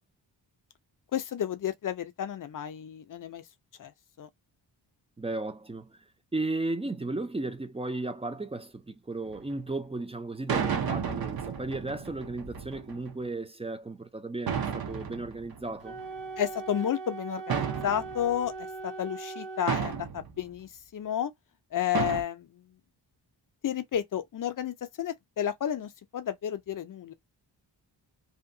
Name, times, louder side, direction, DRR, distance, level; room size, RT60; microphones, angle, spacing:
voice 1, 1.1-3.4 3.8-3.9 4.2-4.3 16.4-21.3 21.7-22.6 23.6-27.1, left 10 dB, 50° left, 0.5 m, -32 dB
voice 2, 5.2-6.0 6.3-16.0, right 2 dB, 15° right, 0.3 m, -35 dB
sound 1, 9.3-9.5 10.5-13.1 14.5-16.2 17.5-18.5 19.7-20.4 21.9-22.2, right 7 dB, 55° right, 0.7 m, -32 dB
Wind instrument woodwind instrument, 15.8-19.7, right 4 dB, 80° right, 0.9 m, -40 dB
2.8 x 2.2 x 2.6 m
wide cardioid pair, 110°, 44 cm